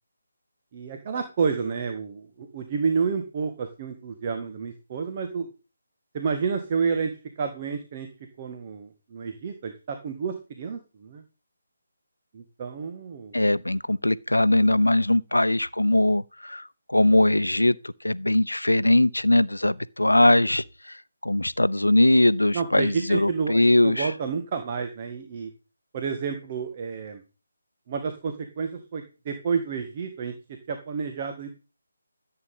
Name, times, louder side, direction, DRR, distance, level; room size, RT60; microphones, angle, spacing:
voice 1, 0.7-5.5 6.1-8.1 8.4-11.2 12.3-13.4 22.5-25.5 25.9-27.2 27.9-30.3 30.7-31.5, right 5 dB, 30° right, 1.8 m, -30 dB
voice 2, 13.3-21.0 21.2-24.1, left 1 dB, 85° left, 0.8 m, -21 dB
14.0 x 8.5 x 5.5 m
figure-of-eight pair, 150°, 0 cm